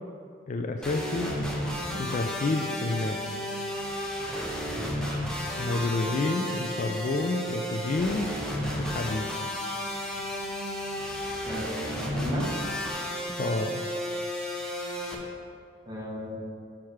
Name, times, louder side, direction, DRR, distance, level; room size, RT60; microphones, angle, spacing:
voice 1, 0.5-1.3 2.0-3.2 5.6-8.3 8.8-9.3 13.4-13.8, left 3 dB, 35° left, 5 dB, 0.3 m, -29 dB
sound 1, 0.8-15.2, equal, 5° left, 0.8 m, -33 dB
voice 2, 11.4-12.5 15.9-16.4, left 1 dB, 20° right, -5 dB, 1.4 m, -35 dB
6.4 x 5.9 x 4.6 m, 2.3 s
head